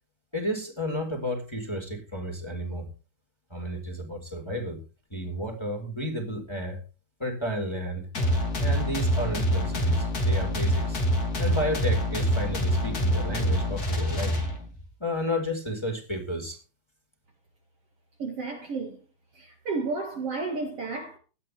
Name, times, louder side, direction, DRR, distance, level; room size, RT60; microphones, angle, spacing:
voice 1, 0.3-2.9 3.5-4.8 5.1-6.8 7.2-8.1 8.6-11.0 11.4-14.4 15.0-16.6, equal, 5° left, 4.2 m, -32 dB
sound 1, 8.1-14.9, equal, 30° left, 3.2 m, -26 dB
voice 2, 18.2-19.0 19.3-21.2, right 4 dB, 50° right, 2.7 m, -32 dB
18.0 x 12.5 x 3.4 m
omnidirectional pair, 3.9 m